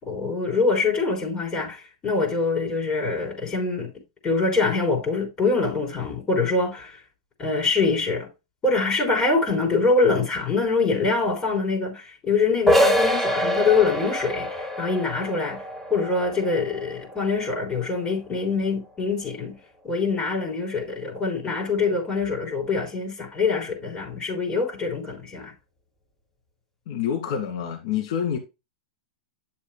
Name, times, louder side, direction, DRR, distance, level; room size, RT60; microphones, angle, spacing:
voice 1, 0.0-3.9 4.2-7.0 7.4-8.3 8.6-15.6 15.9-19.6 19.8-25.5, left 4 dB, 25° left, 3.8 m, -24 dB
sound 1, 12.7-18.1, equal, 5° left, 2.7 m, -25 dB
voice 2, 26.9-28.4, left 8 dB, 60° left, 2.2 m, -27 dB
9.2 x 7.2 x 2.2 m
hypercardioid pair, 105°, 4 cm